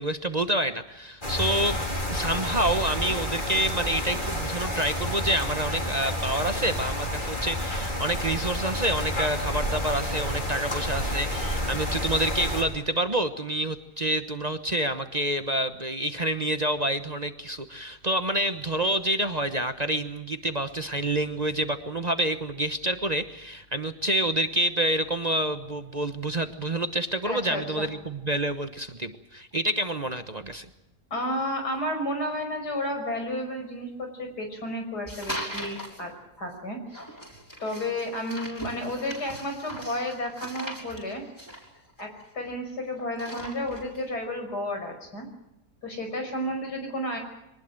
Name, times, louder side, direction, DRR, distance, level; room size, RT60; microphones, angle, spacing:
voice 1, 0.0-1.8 2.1-30.7, right 1 dB, 30° right, 9 dB, 1.1 m, -28 dB
sound 1, 1.2-12.6, equal, 30° left, 4.7 m, -30 dB
voice 2, 27.2-27.9 31.1-36.8 37.6-41.2 42.0-45.3 45.8-47.2, left 1 dB, 90° left, 4 dB, 6.2 m, -32 dB
sound 2, 35.1-36.0 36.9-42.7 43.0-44.0, equal, 10° left, 5.9 m, -39 dB
24.0 x 20.0 x 7.7 m, 0.90 s
omnidirectional pair, 1.7 m